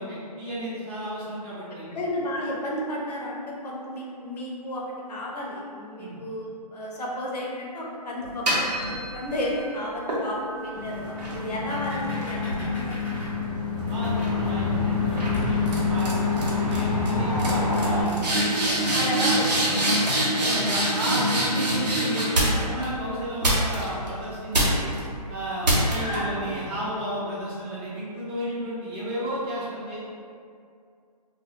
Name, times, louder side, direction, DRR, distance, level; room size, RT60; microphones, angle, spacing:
voice 1, 0.0-1.9 6.0-6.2 13.9-18.6 20.3-24.9 25.3-30.0, right 1 dB, 20° right, -9 dB, 0.7 m, -33 dB
voice 2, 1.9-4.8 5.1-6.4 6.7-13.1 18.6-20.1 20.4-20.7 26.0-26.4, left 1 dB, 75° left, -3 dB, 0.6 m, -33 dB
sound 1, 8.2-9.5 10.1-13.7 14.0-14.4 15.2-15.4 15.7-16.1 16.4-16.8 17.1-17.2 17.4-22.8 23.4-24.1 24.5-25.0 25.6-26.2, right 1 dB, 85° right, 0.8 m, -25 dB
sound 2, 10.7-18.0, left 4 dB, 10° left, 0.9 m, -26 dB
2.1 x 2.1 x 2.7 m, 2.3 s
hypercardioid pair, 145°, 21 cm